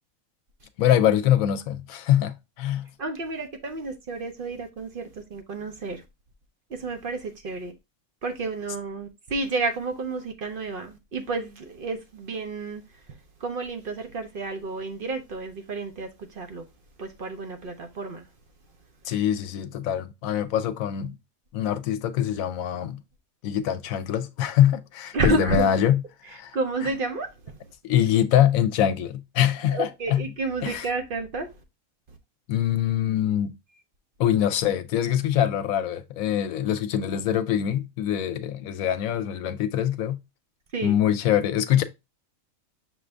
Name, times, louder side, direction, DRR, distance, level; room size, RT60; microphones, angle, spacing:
voice 1, 0.8-2.9 19.0-21.2 21.5-23.0 23.4-26.0 26.3-26.6 27.8-30.3 30.6-30.9 32.5-33.5 34.2-40.2 40.8-41.8, left 10 dB, 80° left, 1.0 m, -24 dB
voice 2, 3.0-6.0 6.8-7.7 8.2-12.8 13.4-16.1 16.4-16.6 17.0-18.2 25.1-25.7 26.5-27.6 29.7-31.5 40.7-41.0, right 3 dB, 50° right, 0.7 m, -30 dB
6.1 x 2.5 x 3.3 m
omnidirectional pair, 1.5 m